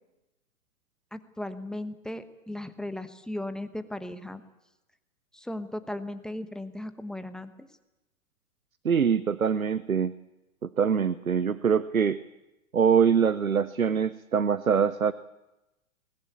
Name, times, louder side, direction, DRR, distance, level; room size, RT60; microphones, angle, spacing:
voice 1, 1.1-4.4 5.3-7.7, left 1 dB, ahead, 11 dB, 1.1 m, -37 dB
voice 2, 8.8-10.1 10.6-12.2 12.7-15.1, right 7 dB, 85° right, 16 dB, 0.8 m, -24 dB
21.5 x 19.5 x 8.7 m, 0.99 s
figure-of-eight pair, 110°, 41 cm